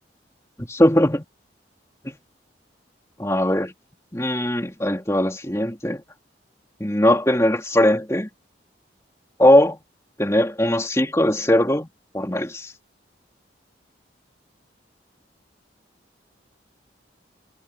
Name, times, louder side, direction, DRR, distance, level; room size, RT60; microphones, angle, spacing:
voice 1, 0.6-1.2 2.0-2.2 3.2-3.7 4.1-6.0 6.8-8.3 9.4-9.8 10.2-11.9 12.1-12.7, left 1 dB, 15° left, 3.1 m, -20 dB
head